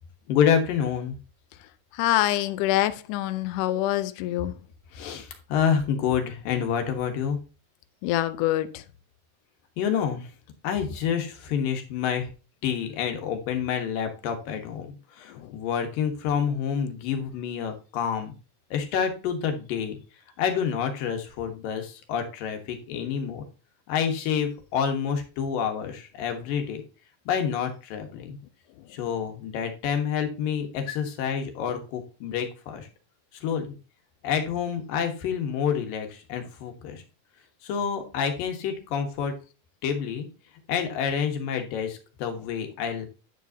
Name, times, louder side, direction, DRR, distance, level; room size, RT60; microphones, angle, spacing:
voice 1, 0.3-1.2 4.9-7.4 9.8-10.3 10.6-12.3 12.6-18.3 18.7-20.0 20.4-23.5 23.9-26.8 27.3-28.4 28.9-32.9 33.4-33.7 34.2-37.0 37.6-39.3 39.8-40.3 40.7-43.1, left 7 dB, 70° left, 5 dB, 2.8 m, -28 dB
voice 2, 1.9-4.6 8.0-8.8 15.3-15.5, left 14 dB, 85° left, 11 dB, 1.8 m, -25 dB
9.9 x 7.4 x 2.7 m, 0.32 s
omnidirectional pair, 4.4 m